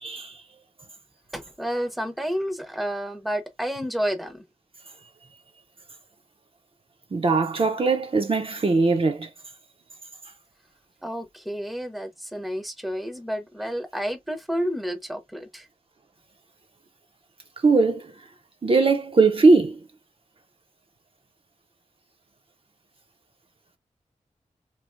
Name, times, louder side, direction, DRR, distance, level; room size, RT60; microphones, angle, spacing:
voice 1, 0.0-0.3 7.1-9.3 17.6-18.0 18.6-19.8, right 3 dB, 45° right, 0.6 m, -20 dB
voice 2, 1.3-4.4 11.0-15.7, equal, ahead, 0.6 m, -30 dB
3.2 x 2.5 x 2.5 m
wide cardioid pair, 60°, 13 cm